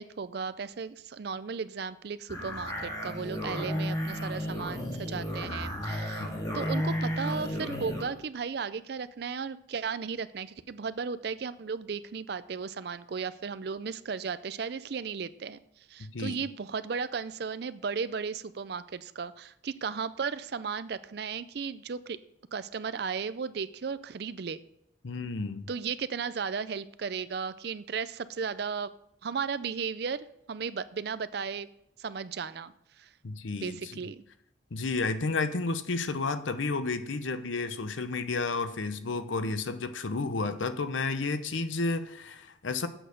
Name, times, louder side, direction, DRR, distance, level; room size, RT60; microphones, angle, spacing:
voice 1, 0.0-22.2 22.5-24.6 25.7-28.9 29.2-31.7 32.0-33.1 33.6-34.2, right 5 dB, 55° right, 15 dB, 0.4 m, -35 dB
sound 1, 2.3-8.1, equal, 20° left, 2.4 m, -33 dB
voice 2, 25.0-25.7 33.2-33.9 34.7-42.9, left 3 dB, 80° left, 11 dB, 0.8 m, -31 dB
7.8 x 6.4 x 6.5 m, 0.79 s
head